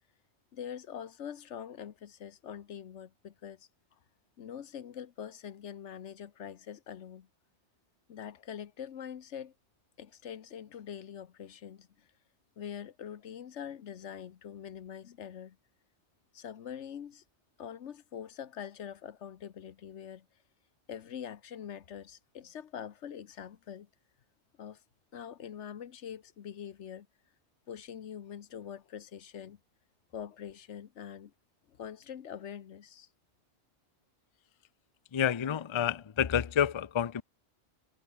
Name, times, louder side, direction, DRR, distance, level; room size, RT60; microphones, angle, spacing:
voice 1, 0.5-3.7 4.4-7.3 8.1-9.5 10.0-12.1 12.6-15.6 16.3-17.2 17.6-20.3 20.9-23.9 24.6-24.8 25.1-27.1 27.7-29.6 30.1-31.3 31.7-33.1, left 8 dB, 90° left, 1.3 m, -44 dB
voice 2, 35.1-37.2, left 9 dB, 35° left, 0.5 m, -29 dB
omnidirectional pair, 1.2 m